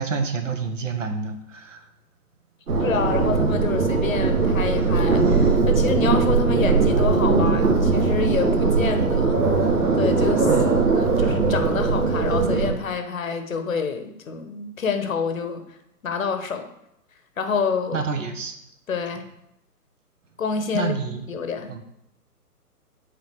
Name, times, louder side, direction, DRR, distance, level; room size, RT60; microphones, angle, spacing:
voice 1, 0.0-1.8 10.5-10.8 17.9-18.5 20.7-21.2 21.7-21.8, right 5 dB, 50° right, 7 dB, 1.0 m, -28 dB
sound 1, 2.7-12.7, right 4 dB, 70° right, 1.7 m, -20 dB
voice 2, 2.8-10.5 10.9-15.7 16.0-16.7 17.4-18.0 18.9-19.2 20.4-20.9 21.3-21.7, left 5 dB, 55° left, 7 dB, 1.1 m, -28 dB
8.6 x 3.9 x 4.8 m, 0.81 s
figure-of-eight pair, 130°, 47 cm